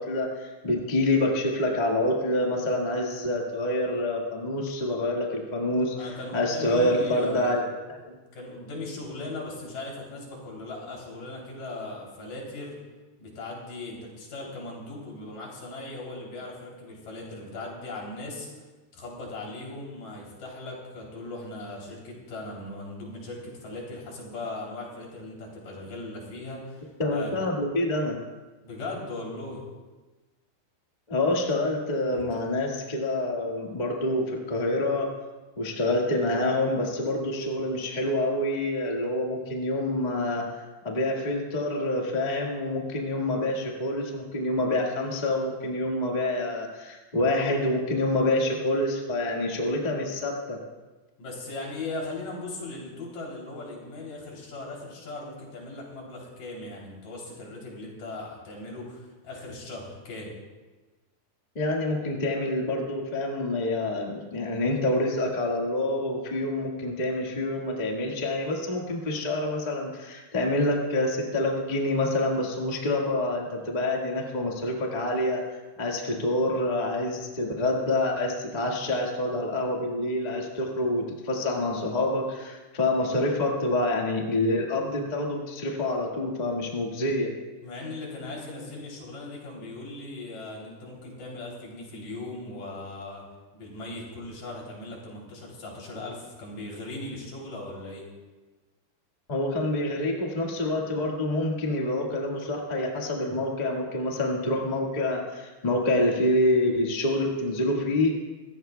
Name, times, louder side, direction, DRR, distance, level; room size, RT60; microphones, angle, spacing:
voice 1, 0.0-7.6 27.0-28.2 31.1-35.1 35.6-40.4 40.8-50.6 61.5-75.4 75.8-87.3 99.3-108.2, left 1 dB, 25° left, -1 dB, 0.9 m, -27 dB
voice 2, 6.0-7.6 8.3-12.7 13.2-18.5 18.9-26.8 27.1-27.3 28.6-29.6 51.2-60.3 87.6-93.2 93.5-98.1, left 2 dB, 75° left, -2 dB, 4.8 m, -38 dB
25.5 x 15.0 x 2.3 m, 1.2 s
omnidirectional pair, 3.8 m